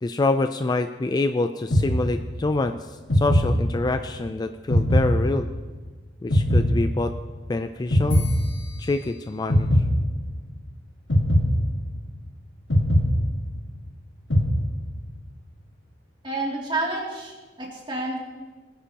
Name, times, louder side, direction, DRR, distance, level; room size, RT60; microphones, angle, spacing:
voice 1, 0.0-5.5 6.2-7.1 7.5-8.3 8.8-9.8, left 2 dB, 20° left, 8 dB, 0.3 m, -26 dB
sound 1, 1.7-2.6 3.1-4.2 4.7-5.9 6.3-7.5 7.9-9.1 9.5-10.6 11.1-12.3 12.7-13.9 14.3-15.2, equal, 90° left, 1.7 m, -22 dB
voice 2, 16.2-18.2, right 2 dB, 25° right, -2 dB, 2.6 m, -29 dB
20.0 x 10.5 x 2.9 m, 1.3 s
head